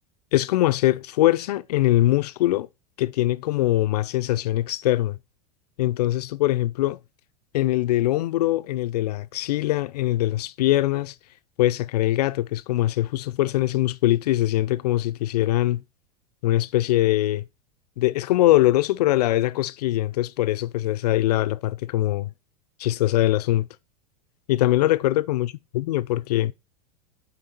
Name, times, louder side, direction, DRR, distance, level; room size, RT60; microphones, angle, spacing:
voice 1, 0.3-2.7 3.0-5.2 5.8-7.0 7.5-11.1 11.6-15.8 16.4-17.5 18.0-22.3 22.8-23.7 24.5-26.5, left 15 dB, 80° left, 0.5 m, -22 dB
6.6 x 4.6 x 4.2 m
hypercardioid pair, 110°, 20 cm